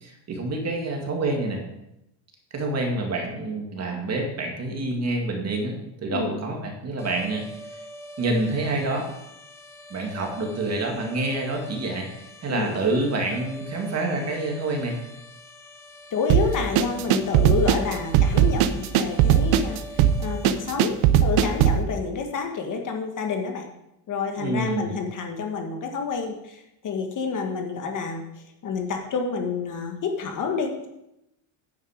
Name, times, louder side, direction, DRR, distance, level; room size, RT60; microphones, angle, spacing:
voice 1, 0.0-1.6 2.5-7.5 7.7-7.8 8.2-9.1 9.9-12.1 12.4-15.0 24.4-25.0, right 2 dB, 30° right, 1 dB, 2.2 m, -27 dB
sound 1, 7.0-20.5, equal, 5° left, 1.2 m, -43 dB
voice 2, 12.5-12.8 16.1-23.6 24.1-28.2 28.6-30.9, left 5 dB, 40° left, 3 dB, 1.5 m, -29 dB
sound 2, 16.3-21.8, right 10 dB, 75° right, 1.0 m, -19 dB
9.4 x 9.1 x 5.1 m, 0.88 s
cardioid pair, 155°, 50 cm